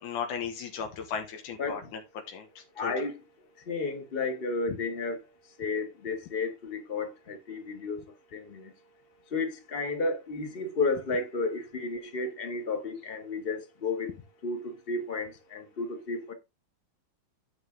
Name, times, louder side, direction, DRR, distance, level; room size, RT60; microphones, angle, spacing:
voice 1, 0.0-1.8 2.3-2.5 2.8-2.9 4.7-4.8, left 7 dB, 85° left, 2.7 m, -35 dB
voice 2, 2.8-3.1 3.7-5.2 5.6-8.0 8.3-8.6 9.3-14.1 14.4-16.3, left 3 dB, 45° left, 0.7 m, -32 dB
9.8 x 5.6 x 3.7 m
omnidirectional pair, 3.4 m